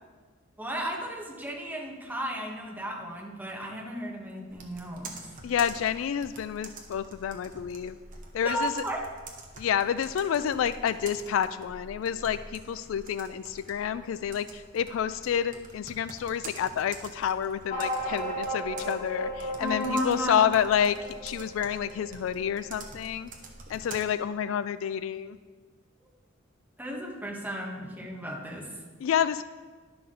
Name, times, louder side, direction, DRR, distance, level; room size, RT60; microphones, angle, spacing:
voice 1, 0.6-5.1 8.4-9.0 19.6-20.4 26.8-28.7, equal, 10° right, -2 dB, 1.5 m, -34 dB
Computer keyboard, 4.5-24.0, right 3 dB, 45° right, 1.1 m, -47 dB
voice 2, 5.4-8.0 8.3-8.7 9.6-23.3 23.7-25.4 29.0-29.4, left 8 dB, 70° left, 14 dB, 0.3 m, -29 dB
sound 1, 17.7-22.6, equal, 35° left, 2.1 m, -35 dB
11.5 x 5.8 x 3.9 m, 1.4 s
head